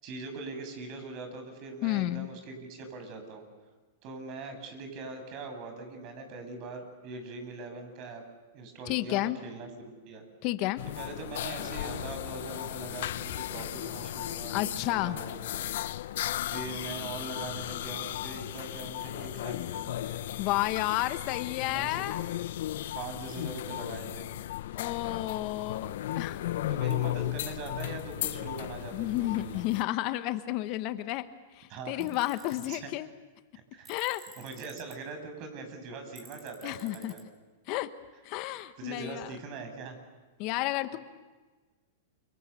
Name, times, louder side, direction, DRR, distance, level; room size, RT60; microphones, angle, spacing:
voice 1, 0.0-3.4 4.0-8.2 8.5-10.2 11.0-15.5 16.5-20.2 21.7-22.0 22.9-24.3 26.7-29.6 31.7-32.1 32.7-32.9 33.7-33.9 34.2-37.2 38.8-39.9, right 3 dB, 45° right, 6 dB, 7.4 m, -42 dB
voice 2, 1.8-2.3 8.9-9.4 10.4-10.8 14.5-15.2 20.4-22.2 24.7-25.9 26.2-26.4 28.9-31.3 31.5-33.1 33.9-34.2 36.6-37.1 37.7-37.9 38.2-39.3 40.4-41.0, left 16 dB, 45° left, 11 dB, 1.2 m, -31 dB
sound 1, 10.8-29.8, left 13 dB, 70° left, 0.8 m, -35 dB
Tools, 32.0-32.8 33.8-34.9 36.2-37.2, right 3 dB, 20° right, 5.7 m, -52 dB
29.5 x 26.0 x 7.1 m, 1.3 s
hypercardioid pair, 125°, 0 cm